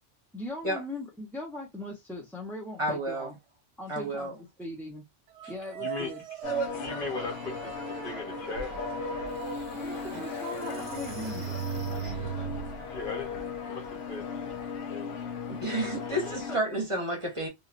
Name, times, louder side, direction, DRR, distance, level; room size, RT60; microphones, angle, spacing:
voice 1, 0.3-3.3 3.8-5.0 5.5-6.2 9.7-11.6 16.2-16.6, left 1 dB, 5° left, 0.5 m, -40 dB
voice 2, 2.8-3.3 3.9-4.3 15.5-17.5, right 1 dB, 30° right, 0.9 m, -31 dB
sound 1, 5.3-13.8, right 9 dB, 80° right, 0.9 m, -41 dB
voice 3, 5.8-6.1 6.7-7.7 8.0-8.7 10.6-10.9 12.9-14.2 14.9-15.2 16.0-16.3, left 3 dB, 55° left, 0.8 m, -38 dB
sound 2, 6.4-16.6, left 5 dB, 85° left, 1.0 m, -37 dB
sound 3, 9.1-9.2 9.7-12.8, right 8 dB, 50° right, 0.6 m, -37 dB
3.0 x 2.7 x 2.5 m
omnidirectional pair, 1.2 m